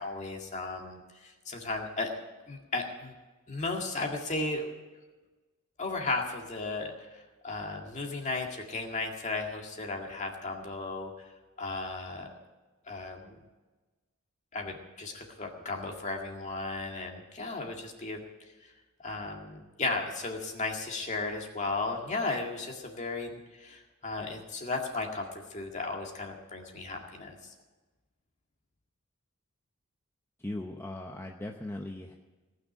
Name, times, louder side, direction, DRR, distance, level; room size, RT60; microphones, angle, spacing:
voice 1, 0.0-2.1 2.5-3.1 3.5-4.7 5.8-11.1 11.6-12.3 12.9-13.4 14.5-18.2 18.6-18.7 19.0-27.3, left 3 dB, 35° left, 1 dB, 2.0 m, -35 dB
voice 2, 30.4-32.1, left 1 dB, 10° left, 2 dB, 0.7 m, -38 dB
18.5 x 6.3 x 9.9 m, 1.2 s
head